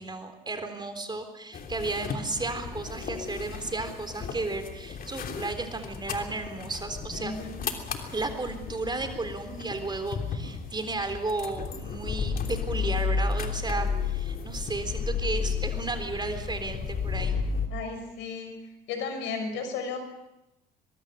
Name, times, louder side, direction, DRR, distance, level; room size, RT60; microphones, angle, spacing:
voice 1, 0.0-7.3 8.1-17.4, right 3 dB, 20° right, 8 dB, 3.8 m, -33 dB
sound 1, 1.5-17.7, left 5 dB, 45° left, 3.1 m, -33 dB
voice 2, 7.1-7.6 17.7-18.5 18.9-20.0, left 5 dB, 65° left, 7 dB, 5.7 m, -34 dB
24.0 x 22.0 x 6.7 m, 0.88 s
hypercardioid pair, 60°, 21 cm